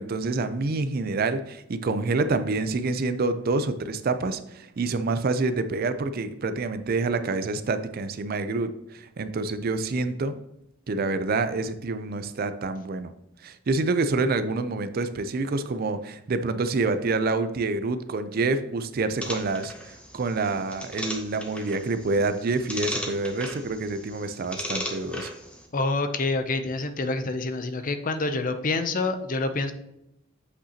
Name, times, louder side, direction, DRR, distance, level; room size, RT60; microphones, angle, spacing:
voice 1, 0.0-10.4 10.9-13.1 13.4-25.3, right 3 dB, 45° right, 11 dB, 0.4 m, -27 dB
sound 1, 19.2-25.7, left 1 dB, 5° left, 0.8 m, -37 dB
voice 2, 25.7-29.7, left 3 dB, 40° left, 10 dB, 0.5 m, -27 dB
8.1 x 5.6 x 2.8 m, 0.84 s
head